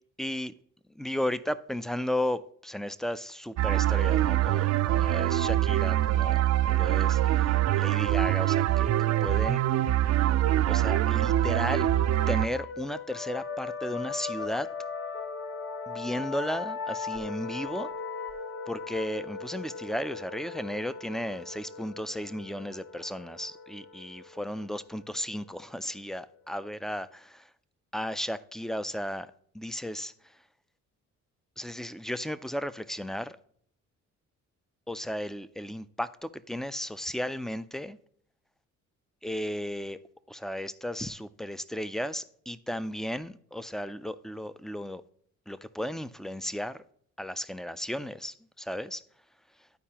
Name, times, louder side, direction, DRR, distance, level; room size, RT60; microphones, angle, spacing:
voice 1, 0.2-0.5 1.0-8.9 9.2-9.6 10.7-11.9 12.3-14.7 15.9-17.9 18.7-27.5 27.9-30.1 31.6-33.4 34.9-38.0 39.2-40.0 40.3-45.0 45.5-46.8 47.2-49.0, left 1 dB, ahead, 0.3 m, -34 dB
sound 1, 3.6-12.5, right 13 dB, 60° right, 0.5 m, -24 dB
sound 2, 11.2-26.5, left 5 dB, 45° left, 0.8 m, -39 dB
12.0 x 4.7 x 2.8 m
cardioid pair, 90°, 30 cm